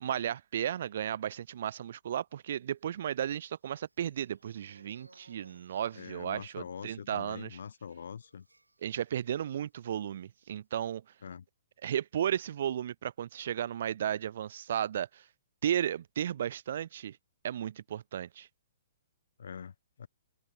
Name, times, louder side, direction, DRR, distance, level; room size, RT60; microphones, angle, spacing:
voice 1, 0.0-7.6 8.8-11.0 11.8-15.3 15.6-17.2 17.4-18.5, right 10 dB, 55° right, 0.4 m, -34 dB
sound 1, 2.8-9.5 9.8-10.0 10.2-10.5, right 2 dB, 90° right, 5.6 m, -64 dB
voice 2, 5.9-8.5 11.2-11.4 19.4-19.7 20.0-20.1, left 7 dB, 65° left, 0.8 m, -44 dB
figure-of-eight pair, 120°, 0 cm